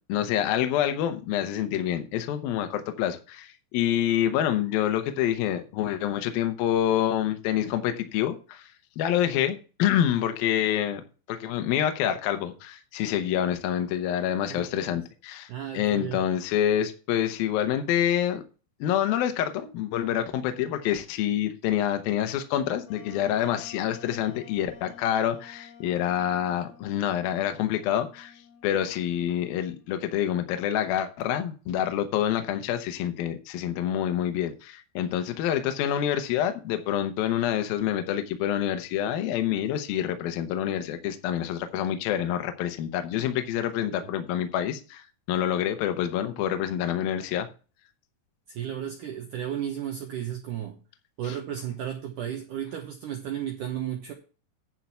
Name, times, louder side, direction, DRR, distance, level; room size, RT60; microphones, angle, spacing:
voice 1, 0.1-8.7 9.0-11.0 11.3-18.4 18.8-28.3 28.6-47.5 51.2-51.4, left 10 dB, 75° left, 7 dB, 2.3 m, -27 dB
voice 2, 14.5-15.0 15.5-16.2 43.9-44.1 48.5-50.8 51.2-54.1, right 10 dB, 75° right, 3 dB, 1.9 m, -34 dB
Wind instrument woodwind instrument, 22.8-30.3, left 7 dB, 60° left, 4.4 m, -51 dB
10.5 x 4.6 x 6.9 m, 0.35 s
omnidirectional pair, 5.3 m